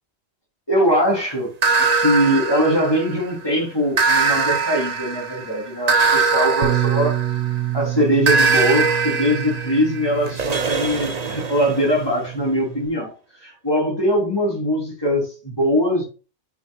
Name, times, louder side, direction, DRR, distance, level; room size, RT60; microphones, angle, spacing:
voice 1, 0.7-1.5 1.8-7.2 7.7-13.1 13.4-16.0, equal, 20° left, -1 dB, 3.8 m, -21 dB
sound 1, 1.6-3.3 4.0-7.7 8.3-12.0, right 4 dB, 40° right, 0.9 m, -21 dB
Bass guitar, 6.6-12.9, right 13 dB, 70° right, 1.2 m, -28 dB
9.1 x 6.3 x 2.4 m, 0.33 s
omnidirectional pair, 1.2 m